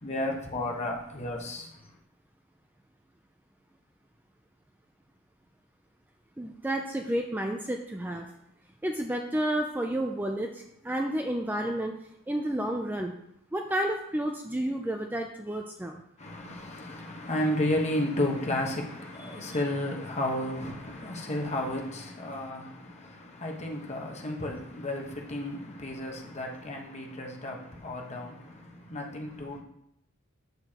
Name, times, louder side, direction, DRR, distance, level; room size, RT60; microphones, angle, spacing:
voice 1, 0.0-1.8 16.2-29.6, left 1 dB, 35° left, 1.2 m, -33 dB
voice 2, 6.4-8.3 8.8-12.0 12.3-13.1 13.5-16.0, right 1 dB, 10° right, 0.4 m, -31 dB
7.9 x 7.1 x 2.9 m
head